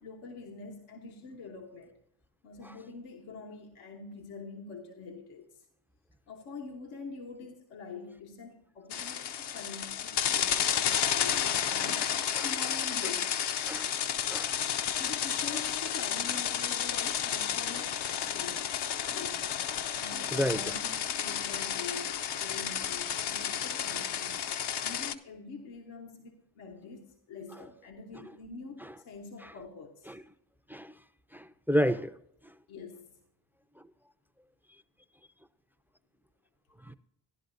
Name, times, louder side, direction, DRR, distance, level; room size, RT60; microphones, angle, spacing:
voice 1, 0.0-1.9 2.4-5.6 6.3-13.4 15.0-19.5 19.9-24.5 24.8-30.1 32.7-33.1, left 4 dB, 85° left, 1.2 m, -45 dB
sound 1, 8.9-25.1, left 9 dB, 60° left, 0.7 m, -31 dB
voice 2, 20.3-20.6 30.1-30.2 30.7-30.9 31.3-32.1 36.9-37.0, equal, 5° right, 0.4 m, -30 dB
13.5 x 10.5 x 2.6 m
supercardioid pair, 60°, 46 cm